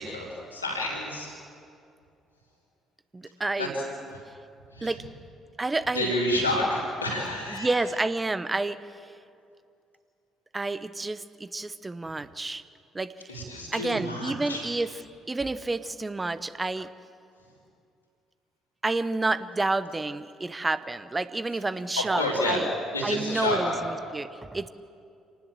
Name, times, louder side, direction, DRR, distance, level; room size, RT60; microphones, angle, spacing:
voice 1, 0.0-1.3 3.6-3.8 4.1-4.2 4.7-5.0 5.9-7.7 13.3-14.7 22.0-22.6 22.9-23.8, left 1 dB, 90° left, -4 dB, 4.3 m, -29 dB
voice 2, 3.1-3.8 4.8-5.0 5.6-6.3 7.5-8.8 10.5-12.6 12.9-13.1 13.7-16.9 18.8-22.6 23.0-23.8 24.1-24.7, right 2 dB, 20° right, 14 dB, 1.0 m, -29 dB
27.5 x 19.0 x 7.6 m, 2.4 s
figure-of-eight pair, 50°, 0 cm